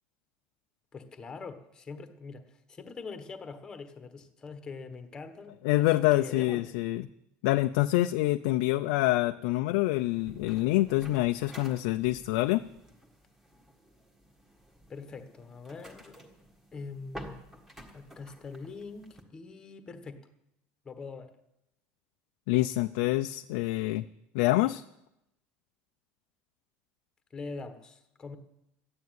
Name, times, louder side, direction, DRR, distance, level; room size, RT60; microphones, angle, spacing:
voice 1, 0.9-6.7 14.9-16.2 16.7-17.3 17.9-20.3 20.8-21.3 27.3-28.4, left 4 dB, 15° left, 8 dB, 1.2 m, -43 dB
voice 2, 5.6-7.0 7.4-12.6 22.5-24.0 24.3-24.8, left 17 dB, 75° left, 7 dB, 0.5 m, -26 dB
sound 1, 10.0-19.2, equal, 5° right, 1.7 m, -51 dB
13.5 x 9.6 x 9.3 m, 0.85 s
cardioid pair, 180°, 5 cm